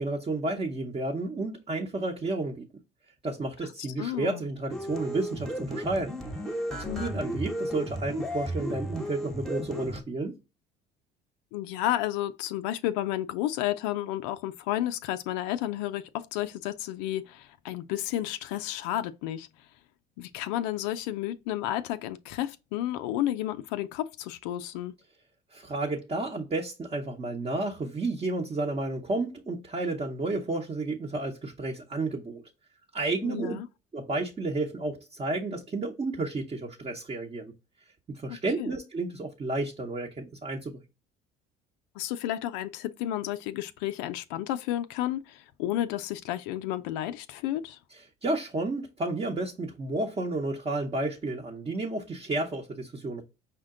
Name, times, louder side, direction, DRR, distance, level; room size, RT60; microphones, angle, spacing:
voice 1, 0.0-2.7 3.2-6.1 6.7-10.4 25.5-32.4 32.9-33.6 33.9-37.5 38.1-40.8 48.2-53.2, right 2 dB, 30° right, 0.9 m, -31 dB
voice 2, 4.0-4.4 6.9-7.2 11.5-19.5 20.2-24.9 33.2-33.7 38.6-38.7 42.0-47.8, left 13 dB, 85° left, 0.4 m, -32 dB
sound 1, 4.7-10.0, equal, ahead, 1.0 m, -34 dB
5.6 x 2.1 x 3.7 m
supercardioid pair, 80°, 21 cm